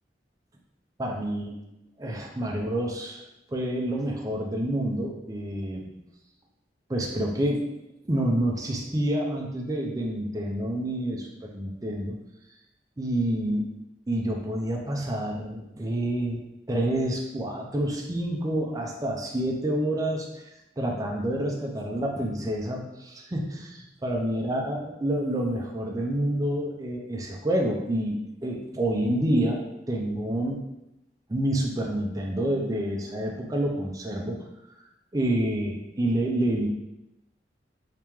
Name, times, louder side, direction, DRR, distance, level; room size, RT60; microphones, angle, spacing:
voice 1, 1.0-1.5 2.0-3.2 3.5-5.9 6.9-7.7 8.0-12.2 13.0-13.7 14.1-16.4 16.7-30.6 31.3-34.4 35.1-36.7, right 1 dB, 20° right, 0 dB, 0.4 m, -28 dB
3.0 x 2.8 x 3.5 m, 0.89 s
head